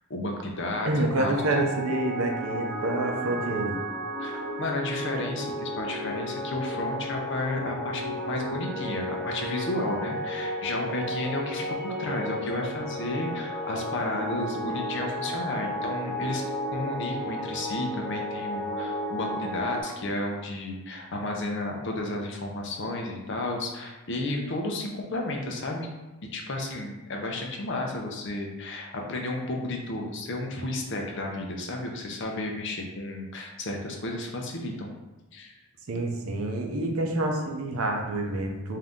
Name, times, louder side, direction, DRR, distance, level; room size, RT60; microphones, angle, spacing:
voice 1, 0.1-0.9 1.2-1.7 4.2-16.4 16.7-25.9 26.3-34.9 35.3-35.5, left 2 dB, 55° left, 1 dB, 0.6 m, -32 dB
voice 2, 0.8-3.8 35.9-38.8, right 2 dB, 80° right, 2 dB, 0.6 m, -28 dB
sound 1, 1.3-19.8, equal, 10° right, 1.1 m, -33 dB
3.7 x 2.8 x 3.5 m, 1.1 s
head